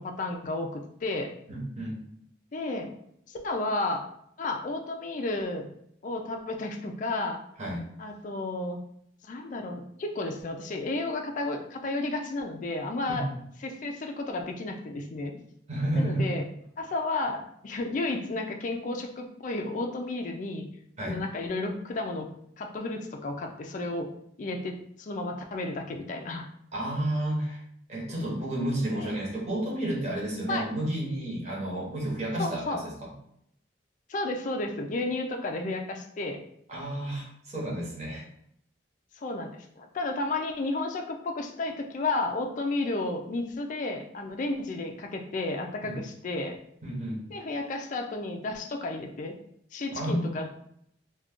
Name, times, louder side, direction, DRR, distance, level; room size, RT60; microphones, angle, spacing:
voice 1, 0.0-1.3 2.5-2.9 3.3-4.0 4.4-5.7 6.0-7.4 8.0-8.8 9.3-13.3 13.6-15.3 15.9-16.5 16.8-20.7 21.0-24.1 24.4-26.5 28.9-29.1 30.5-30.7 32.4-32.8 34.1-36.4 39.2-46.6 47.3-49.4 49.7-50.5, left 2 dB, 45° left, 3 dB, 0.4 m, -32 dB
voice 2, 1.5-2.0 7.6-7.8 13.1-13.2 15.7-16.3 21.0-21.2 26.7-27.6 27.9-33.1 36.7-38.2 45.8-46.1 46.8-47.2 49.9-50.3, right 1 dB, 35° right, -3 dB, 0.9 m, -31 dB
2.4 x 2.2 x 3.5 m, 0.71 s
head